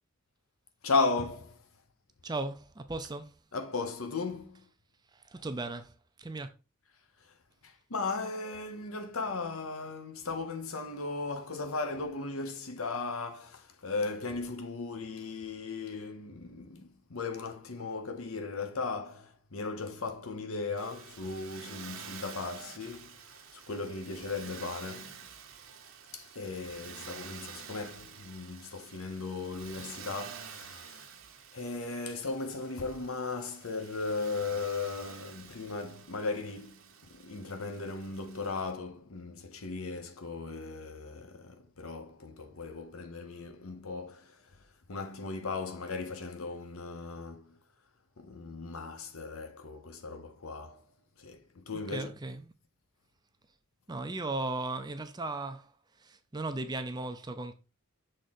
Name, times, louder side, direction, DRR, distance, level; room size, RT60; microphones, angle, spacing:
voice 1, 0.8-1.7 3.5-4.7 7.2-7.3 7.6-25.3 26.1-31.1 31.5-44.6 44.9-47.6 48.2-50.8 51.2-52.1, left 3 dB, 70° left, 1.0 m, -37 dB
voice 2, 2.2-3.4 5.1-6.5 51.9-52.5 53.9-57.5, right 2 dB, 20° right, 0.5 m, -37 dB
Motor vehicle (road), 20.8-38.7, right 7 dB, 60° right, 0.9 m, -49 dB
6.6 x 3.7 x 4.1 m
head